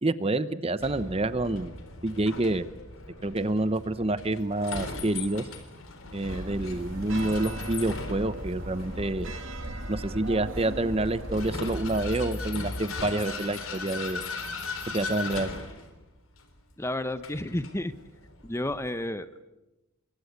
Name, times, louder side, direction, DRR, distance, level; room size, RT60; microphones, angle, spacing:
voice 1, 0.0-1.7 2.0-2.7 3.2-5.5 6.1-9.3 9.9-14.2 14.9-15.5, right 2 dB, 30° right, 13 dB, 0.9 m, -28 dB
Vehicle, 0.8-18.9, left 3 dB, 75° left, 4.1 m, -39 dB
sound 1, 6.3-12.8, right 1 dB, 65° right, 3.1 m, -38 dB
voice 2, 16.8-17.9 18.4-19.4, left 1 dB, 15° left, 11 dB, 1.0 m, -31 dB
28.0 x 24.5 x 8.2 m, 1.0 s
head